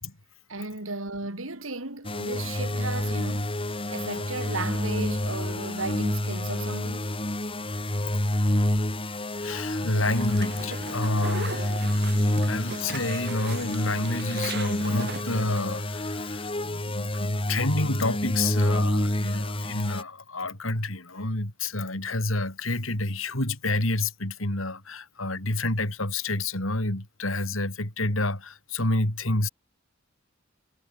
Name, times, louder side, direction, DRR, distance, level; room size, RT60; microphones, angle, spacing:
voice 1, 0.5-3.6 3.9-7.0, right 3 dB, 85° right, 4.6 m, -35 dB
sound 1, 2.0-20.0, left 1 dB, 25° left, 2.8 m, -28 dB
voice 2, 9.4-11.9 12.5-29.5, left 2 dB, 85° left, 4.8 m, -29 dB
sound 2, 10.0-15.6, right 4 dB, 55° right, 2.3 m, -39 dB
sound 3, 11.5-16.5, left 9 dB, 65° left, 5.3 m, -48 dB
head